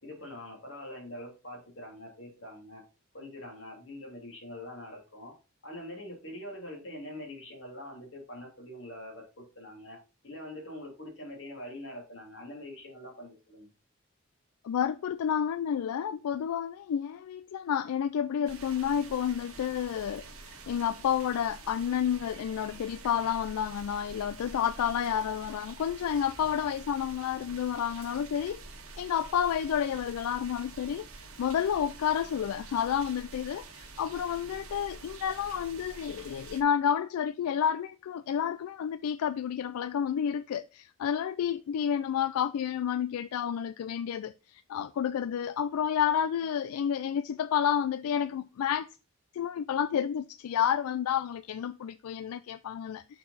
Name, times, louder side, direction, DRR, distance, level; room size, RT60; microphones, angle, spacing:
voice 1, 0.0-2.8 3.1-5.3 5.6-10.0 10.2-13.7, left 1 dB, 60° left, 2.6 m, -44 dB
voice 2, 14.6-28.6 29.0-31.1 31.4-48.9 49.3-53.2, left 8 dB, 85° left, 0.3 m, -30 dB
sound 1, 18.5-36.6, right 3 dB, 80° right, 1.6 m, -47 dB
6.5 x 4.5 x 4.1 m
head